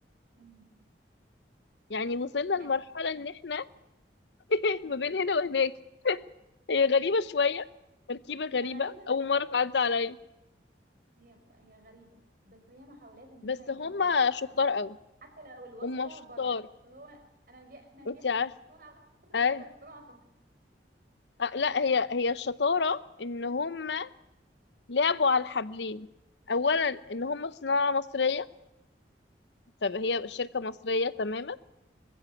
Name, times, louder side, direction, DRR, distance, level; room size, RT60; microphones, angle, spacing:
voice 1, 0.4-0.7 2.6-2.7 8.5-9.1 9.4-9.5 11.2-12.2 12.4-14.8 15.2-18.3 18.7-20.2, right 1 dB, 50° right, 6 dB, 4.4 m, -52 dB
voice 2, 1.9-3.7 4.5-5.7 6.0-6.2 6.7-7.6 8.1-10.2 13.4-15.0 15.8-16.1 16.4-16.6 18.1-18.5 19.3-19.6 21.4-24.1 24.9-26.1 26.5-28.5 29.8-31.6, left 4 dB, 75° left, 16 dB, 0.8 m, -28 dB
21.0 x 15.0 x 9.5 m, 0.93 s
head